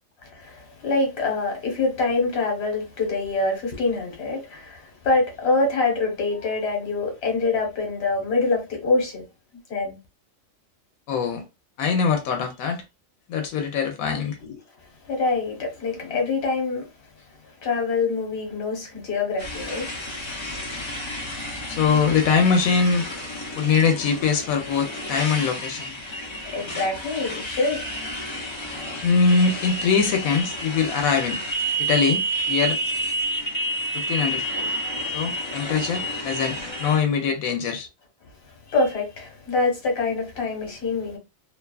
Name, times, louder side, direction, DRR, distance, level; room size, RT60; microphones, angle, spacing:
voice 1, 0.2-9.2 9.7-10.0 14.4-16.9 17.4-19.9 21.1-21.5 26.5-27.8 38.7-41.2, left 3 dB, 50° left, 1.2 m, -25 dB
voice 2, 11.1-11.4 11.8-12.8 13.3-14.4 21.7-23.0 23.5-25.9 29.0-31.4 31.8-32.8 33.9-34.7 35.1-37.9, left 5 dB, 90° left, 1.0 m, -22 dB
Motorcycle, 19.4-37.0, right 1 dB, 35° left, 0.4 m, -30 dB
2.7 x 2.3 x 2.2 m
omnidirectional pair, 1.4 m